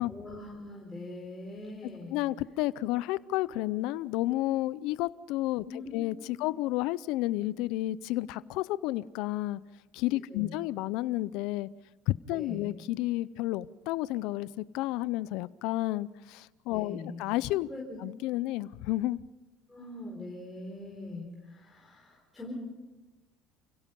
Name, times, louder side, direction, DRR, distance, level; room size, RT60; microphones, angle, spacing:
voice 1, 0.1-2.2 5.6-6.0 6.3-6.5 10.3-10.6 12.3-12.7 16.7-17.2 17.7-18.0 19.7-22.5, left 2 dB, 10° left, -3 dB, 4.6 m, -42 dB
voice 2, 2.1-9.6 9.9-11.7 12.1-17.7 18.0-19.2, left 16 dB, 75° left, 18 dB, 0.6 m, -31 dB
30.0 x 17.0 x 5.4 m, 1.1 s
cardioid pair, 125°, 0 cm